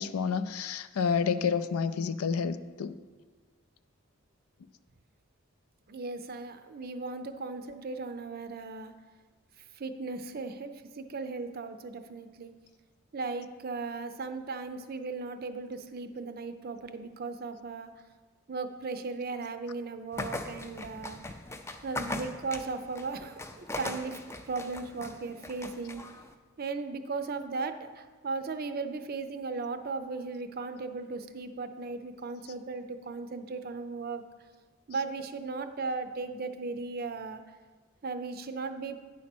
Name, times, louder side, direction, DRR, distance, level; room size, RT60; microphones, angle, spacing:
voice 1, 0.0-3.0, left 6 dB, 85° left, 12 dB, 0.4 m, -29 dB
voice 2, 5.9-8.9 9.8-12.5 13.1-17.9 18.5-21.3 21.8-24.2 24.5-26.0 26.6-34.2 34.9-37.4 38.0-39.0, right 4 dB, 45° right, 9 dB, 0.5 m, -37 dB
sound 1, 20.1-26.3, left 2 dB, 10° left, 0.4 m, -40 dB
9.5 x 4.2 x 6.0 m, 1.5 s
head